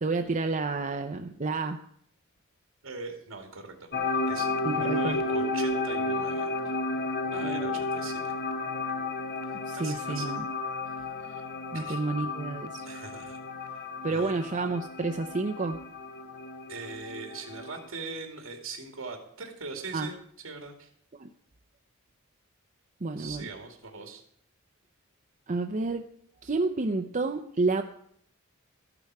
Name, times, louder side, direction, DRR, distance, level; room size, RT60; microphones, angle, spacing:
voice 1, 0.0-1.8 4.6-5.2 7.4-7.8 9.7-10.4 11.7-12.9 14.0-15.8 19.9-20.1 21.2-21.3 23.0-23.5 25.5-26.1 26.4-27.8, right 3 dB, 35° right, 5 dB, 0.7 m, -30 dB
voice 2, 2.8-3.9 4.3-6.5 7.3-8.3 9.4-10.3 10.8-11.5 11.7-12.0 12.9-13.4 13.7-14.3 16.7-20.9 23.2-24.2, right 3 dB, 75° right, 3 dB, 2.4 m, -41 dB
sound 1, 3.9-17.9, left 2 dB, 50° left, 0.9 m, -32 dB
13.0 x 12.0 x 4.7 m, 0.67 s
head